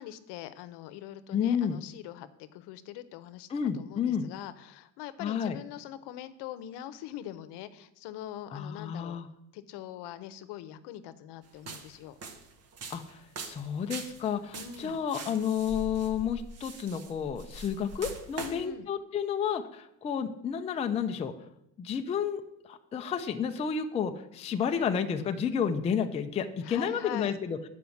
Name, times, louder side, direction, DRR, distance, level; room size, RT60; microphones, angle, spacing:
voice 1, 0.0-3.5 3.7-9.2 9.5-12.2 14.5-15.0 18.4-18.9 26.6-27.4, left 11 dB, 80° left, 13 dB, 0.8 m, -43 dB
voice 2, 1.3-1.8 3.5-4.3 5.2-5.6 8.5-9.3 12.9-21.3 21.8-27.6, left 7 dB, 15° left, 6 dB, 0.4 m, -31 dB
sound 1, 11.5-18.6, right 3 dB, 40° right, 0.9 m, -43 dB
9.4 x 5.1 x 7.0 m, 0.81 s
cardioid pair, 165°, 40 cm